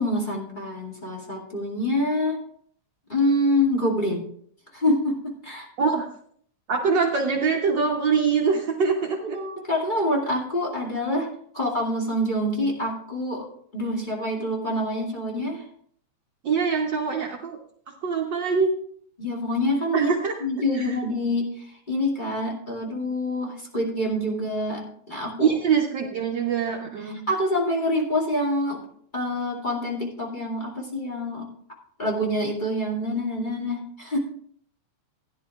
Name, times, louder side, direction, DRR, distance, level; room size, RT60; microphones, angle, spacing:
voice 1, 0.0-2.4 3.1-4.2 4.7-5.7 9.2-13.5 13.7-15.7 19.2-20.1 20.4-25.6 27.0-28.8 29.1-31.5 32.0-34.2, left 1 dB, 20° left, -3 dB, 2.0 m, -26 dB
voice 2, 6.7-9.4 16.4-17.6 18.0-18.7 19.9-20.3 20.7-21.0 25.4-27.2, right 5 dB, 85° right, 0 dB, 0.9 m, -23 dB
16.0 x 10.5 x 2.4 m, 0.62 s
omnidirectional pair, 3.3 m